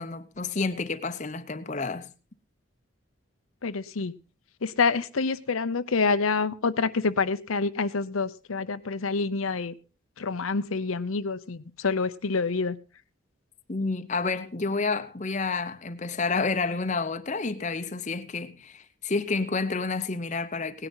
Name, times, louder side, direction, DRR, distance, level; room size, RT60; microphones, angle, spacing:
voice 1, 0.0-2.1 13.7-20.9, left 4 dB, 35° left, 0.8 m, -29 dB
voice 2, 3.6-4.1 4.6-9.7 10.2-12.8, left 4 dB, 85° left, 0.8 m, -27 dB
18.0 x 9.9 x 4.0 m
head